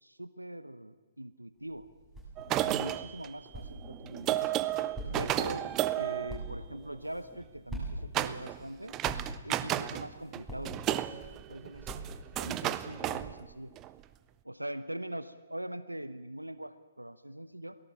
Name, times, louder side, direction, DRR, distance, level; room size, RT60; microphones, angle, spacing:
voice 1, 0.0-1.9 2.5-4.5 5.1-9.0 9.4-11.2 11.5-12.0 12.4-13.7 14.4-17.8, right 1 dB, 90° right, 13 dB, 0.9 m, -42 dB
sound 1, 1.6-12.5, right 1 dB, 5° right, 7.3 m, -45 dB
sound 2, 2.4-7.1 8.1-8.6 8.9-10.1 10.3-13.9, right 13 dB, 20° right, 0.7 m, -33 dB
23.5 x 18.0 x 7.0 m, 1.3 s
figure-of-eight pair, 130°, 0 cm